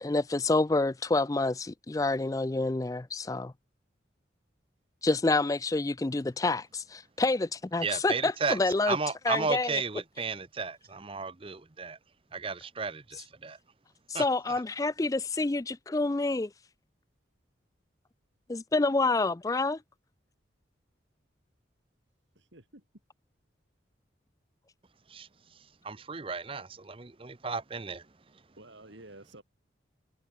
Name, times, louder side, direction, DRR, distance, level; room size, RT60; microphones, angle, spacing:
voice 1, 0.0-3.5 5.0-9.0 9.3-9.8 14.1-16.5 18.5-19.8, left 3 dB, 20° left, 0.4 m, -28 dB
voice 2, 7.8-8.6 8.9-12.0 12.3-13.6 14.1-14.6 25.1-28.1, right 4 dB, 30° right, 0.8 m, -34 dB
voice 3, 22.3-22.8 28.6-29.4, right 2 dB, 75° right, 6.1 m, -51 dB
head